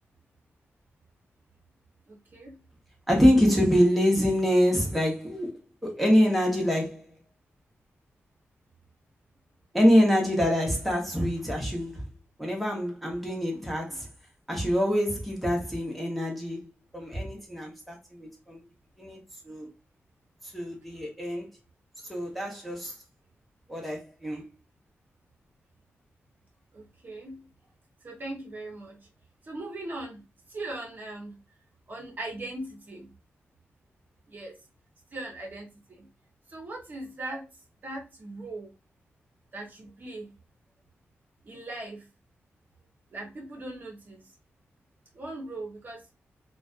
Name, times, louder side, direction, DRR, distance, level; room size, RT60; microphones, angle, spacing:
voice 1, 2.1-2.6 13.6-14.0 26.7-27.5 28.0-29.0 29.4-30.2 30.5-31.4 31.9-33.1 34.3-34.6 35.1-36.1 36.5-37.5 37.8-38.7 39.5-40.3 41.4-42.1 43.1-44.3 45.1-46.0, right 2 dB, 45° right, 0.8 m, -39 dB
voice 2, 3.1-7.1 9.7-12.0 12.4-14.1 14.5-16.7 16.9-18.6 19.0-19.2 19.4-19.7 20.5-21.5 22.1-22.9 23.7-24.5, equal, ahead, 0.8 m, -25 dB
2.4 x 2.2 x 2.4 m
wide cardioid pair, 120°, 5 cm